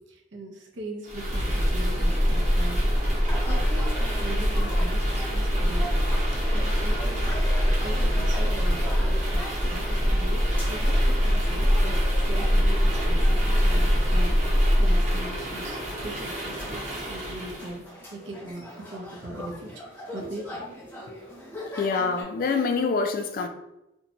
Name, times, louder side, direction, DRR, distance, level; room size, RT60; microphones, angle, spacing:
voice 1, 0.1-5.9 6.5-7.3 7.8-12.0 12.3-20.7, right 1 dB, 90° right, 1 dB, 0.6 m, -40 dB
sound 1, 1.0-17.8, equal, 40° right, 0.9 m, -24 dB
sound 2, 3.2-22.2, equal, 10° left, 0.7 m, -41 dB
voice 2, 21.8-23.5, left 4 dB, 50° left, 5 dB, 0.3 m, -25 dB
2.6 x 2.1 x 2.8 m, 0.90 s
head